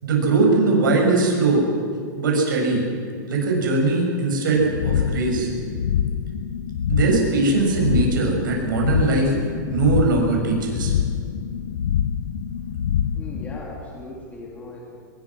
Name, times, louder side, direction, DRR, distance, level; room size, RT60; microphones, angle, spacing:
voice 1, 0.0-1.7 2.2-2.8 3.3-5.5 6.9-9.4 9.7-10.9, right 3 dB, 85° right, 0 dB, 7.8 m, -20 dB
sound 1, 4.5-13.6, left 8 dB, 75° left, 1.0 m, -25 dB
voice 2, 13.1-15.0, left 2 dB, 15° left, -3 dB, 3.4 m, -38 dB
25.5 x 22.0 x 6.3 m, 2.2 s
supercardioid pair, 155°, 11 cm